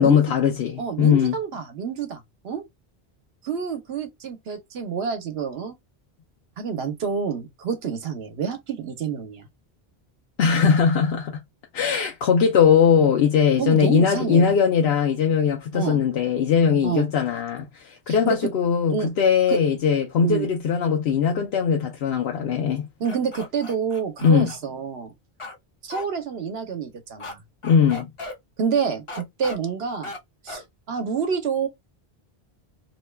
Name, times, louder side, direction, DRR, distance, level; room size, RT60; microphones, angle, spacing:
voice 1, 0.0-1.3 10.4-11.4 11.7-22.9 24.2-24.5 27.6-28.1, left 7 dB, 80° left, 0.9 m, -20 dB
voice 2, 0.8-2.6 3.4-5.7 6.6-9.5 13.6-14.5 15.7-16.0 16.8-17.1 18.1-18.4 18.9-19.1 19.5-19.6 20.2-20.5 23.0-25.1 25.8-27.4 28.6-30.1 30.4-31.7, right 6 dB, 80° right, 1.0 m, -28 dB
sound 1, 23.0-24.6 25.4-25.6 25.9-26.0 27.2-27.3 27.6-28.3 29.1-29.6 30.0-30.2 30.5-30.6, left 2 dB, 35° left, 0.7 m, -36 dB
2.9 x 2.2 x 3.2 m
omnidirectional pair, 1.0 m